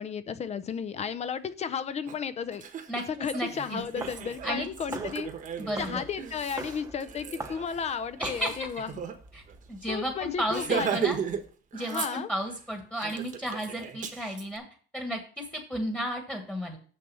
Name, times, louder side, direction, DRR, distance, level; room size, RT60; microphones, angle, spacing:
voice 1, 0.0-2.6 3.2-5.3 5.8-8.9 9.9-11.1 11.9-12.3, left 6 dB, 35° left, 14 dB, 0.6 m, -33 dB
Laughter, 2.1-2.2 2.5-9.2 9.5-9.6 9.9-10.1 10.5-11.4 11.7-12.5 13.0-14.4, right 7 dB, 40° right, 1.1 m, -36 dB
voice 2, 2.9-3.8 4.4-4.7 5.6-6.0 8.2-8.7 9.3-9.4 9.7-11.2 11.7-14.6 14.9-16.8, equal, 5° left, 2 dB, 1.5 m, -33 dB
sound 1, 3.8-11.5, right 3 dB, 15° right, 0.9 m, -45 dB
6.9 x 6.6 x 5.5 m, 0.43 s
cardioid pair, 145°, 20 cm